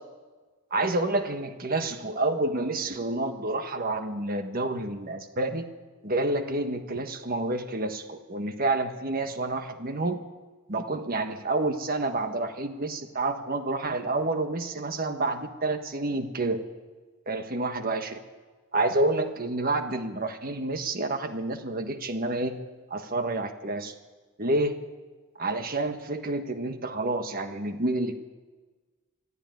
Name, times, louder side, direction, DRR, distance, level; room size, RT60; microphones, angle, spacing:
voice 1, 0.7-5.7 6.0-10.2 10.7-16.6 17.3-18.2 18.7-22.6 22.9-23.9 24.4-24.8 25.4-28.2, right 2 dB, 45° right, 7 dB, 1.5 m, -29 dB
23.5 x 14.0 x 9.3 m, 1.3 s
head